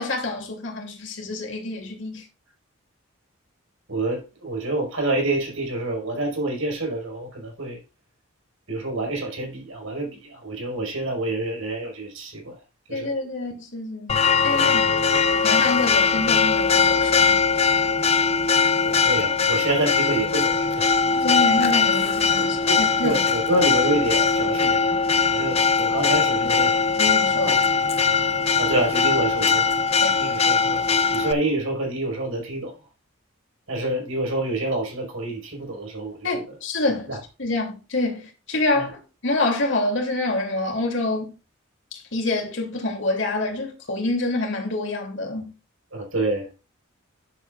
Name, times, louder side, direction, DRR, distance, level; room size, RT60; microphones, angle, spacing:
voice 1, 0.0-2.2 12.9-14.8 15.4-17.4 21.2-23.2 26.4-26.5 27.0-27.6 30.0-30.1 36.2-41.3 41.9-45.5, left 2 dB, 60° left, 3.0 m, -27 dB
voice 2, 3.9-7.8 8.7-12.5 12.9-13.1 14.5-14.7 15.1-15.2 18.8-20.9 22.7-24.8 25.3-26.7 27.4-27.6 28.6-29.7 30.2-30.9 31.1-32.7 33.7-36.4 37.1-37.2 38.7-38.9 45.9-46.5, right 2 dB, 75° right, 5.1 m, -27 dB
Church bell, 14.1-31.3, left 5 dB, 30° left, 0.6 m, -20 dB
10.5 x 8.4 x 2.5 m
head